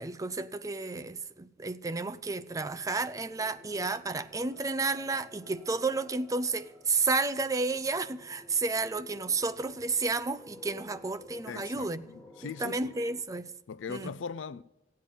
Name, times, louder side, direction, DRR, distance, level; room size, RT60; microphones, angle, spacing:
voice 1, 0.0-12.1 12.4-13.5 13.9-14.1, right 3 dB, 20° right, 0.4 m, -31 dB
sound 1, 2.5-13.2, left 1 dB, 5° left, 2.0 m, -54 dB
voice 2, 11.5-12.9 13.7-14.6, left 5 dB, 80° left, 0.4 m, -40 dB
15.5 x 8.6 x 5.4 m
head